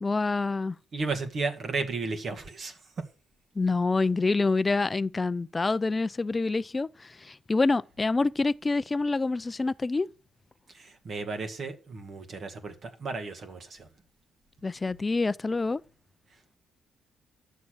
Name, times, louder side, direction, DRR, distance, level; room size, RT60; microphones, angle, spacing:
voice 1, 0.0-0.8 3.6-10.1 14.6-15.8, left 3 dB, 25° left, 0.5 m, -27 dB
voice 2, 0.9-2.7 11.0-13.8, right 3 dB, 50° right, 2.2 m, -33 dB
11.0 x 7.1 x 6.5 m
cardioid pair, 90°, 0 cm